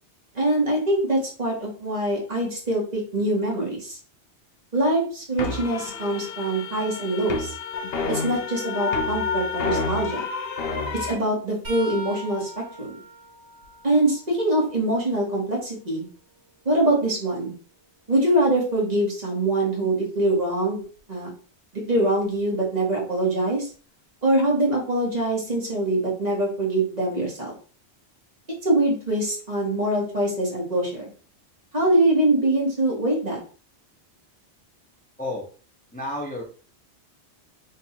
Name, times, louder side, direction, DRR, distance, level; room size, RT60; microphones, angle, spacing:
voice 1, 0.3-4.0 4.7-7.5 8.1-10.3 10.9-12.5 12.8-13.0 13.8-16.1 16.6-17.5 18.1-20.8 21.1-21.3 21.9-23.7 24.2-27.5 28.6-31.0 31.7-33.4, right 1 dB, 40° right, -3 dB, 1.5 m, -23 dB
sound 1, 5.4-11.1, left 4 dB, 65° left, 0.9 m, -29 dB
sound 2, 11.6-15.4 15.9-17.9 20.8-21.0 22.2-22.4 23.7-23.8, right 1 dB, 70° right, 1.7 m, -43 dB
voice 2, 35.9-36.4, left 1 dB, 10° left, -2 dB, 0.7 m, -30 dB
3.8 x 2.6 x 4.3 m, 0.40 s
omnidirectional pair, 1.1 m